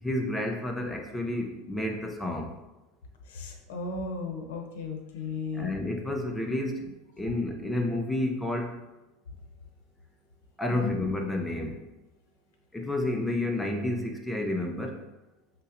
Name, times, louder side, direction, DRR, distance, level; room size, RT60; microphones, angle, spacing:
voice 1, 0.0-2.5 5.5-6.9 7.2-8.7 10.6-11.8 12.7-15.0, left 1 dB, 5° left, 2 dB, 0.4 m, -30 dB
voice 2, 3.3-5.7 10.7-10.9, left 4 dB, 90° left, 3 dB, 0.6 m, -35 dB
5.3 x 2.0 x 2.5 m, 0.99 s
supercardioid pair, 140°, 0 cm